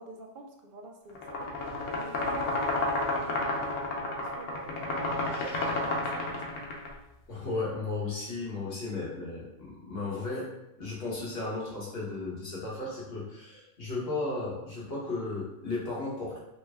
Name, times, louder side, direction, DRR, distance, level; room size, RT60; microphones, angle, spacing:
voice 1, 0.0-6.5, right 3 dB, 60° right, 2 dB, 0.6 m, -46 dB
sound 1, 1.1-6.9, left 2 dB, 80° left, 1.0 m, -31 dB
voice 2, 7.3-10.5 10.8-16.4, left 3 dB, 50° left, -5 dB, 1.2 m, -35 dB
3.2 x 2.1 x 3.2 m, 0.90 s
omnidirectional pair, 1.3 m